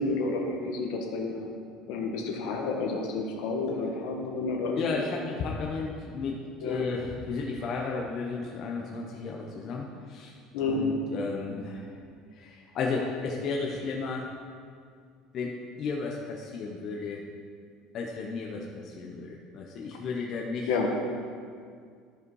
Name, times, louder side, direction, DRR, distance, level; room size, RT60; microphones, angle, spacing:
voice 1, 0.0-1.5 1.9-4.8 6.6-6.8 10.5-10.8 20.7-20.9, left 3 dB, 70° left, 1 dB, 1.4 m, -30 dB
voice 2, 4.8-10.4 10.7-11.9 12.3-14.3 15.3-17.2 17.9-20.7, left 4 dB, 40° left, -1 dB, 0.8 m, -33 dB
12.5 x 5.3 x 4.7 m, 2.1 s
cardioid pair, 160°, 0 cm